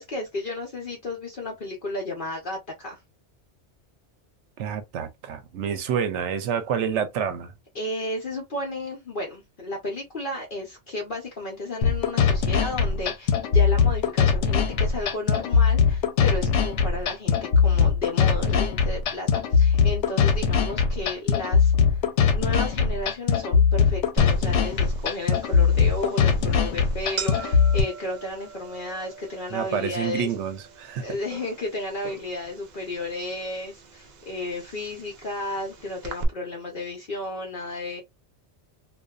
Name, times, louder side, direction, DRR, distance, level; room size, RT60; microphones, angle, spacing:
voice 1, 0.0-3.0 7.7-22.0 22.3-30.3 31.0-38.0, left 2 dB, 50° left, 0.8 m, -33 dB
voice 2, 4.6-7.5 29.5-31.0, right 8 dB, 85° right, 0.9 m, -28 dB
sound 1, 11.8-27.8, left 6 dB, 90° left, 0.9 m, -21 dB
sound 2, 24.2-36.2, right 3 dB, 55° right, 0.5 m, -40 dB
2.6 x 2.3 x 2.2 m
omnidirectional pair, 1.2 m